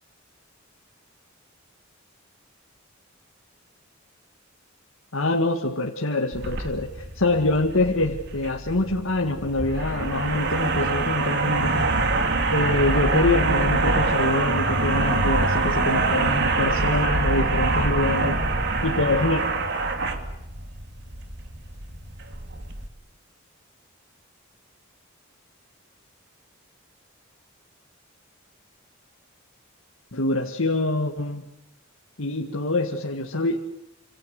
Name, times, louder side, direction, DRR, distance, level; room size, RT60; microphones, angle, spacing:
voice 1, 5.1-11.9 12.5-18.4 18.8-19.4 30.1-31.5 32.2-33.6, left 2 dB, 75° left, 1 dB, 2.0 m, -25 dB
sound 1, 6.3-22.9, right 3 dB, 60° right, 2.9 m, -25 dB
27.0 x 27.0 x 6.7 m, 0.86 s
head